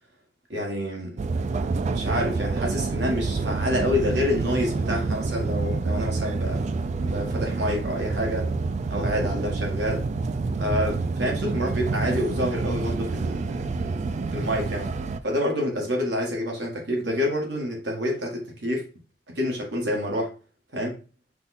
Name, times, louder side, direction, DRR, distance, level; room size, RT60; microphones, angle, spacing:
voice 1, 0.5-1.2 1.9-8.5 8.9-10.1 10.6-14.9 15.2-18.9 19.3-20.3 20.7-21.0, left 1 dB, 75° right, 1.4 m, -28 dB
sound 1, 1.2-15.2, right 3 dB, 40° right, 0.3 m, -28 dB
5.4 x 2.3 x 4.1 m
head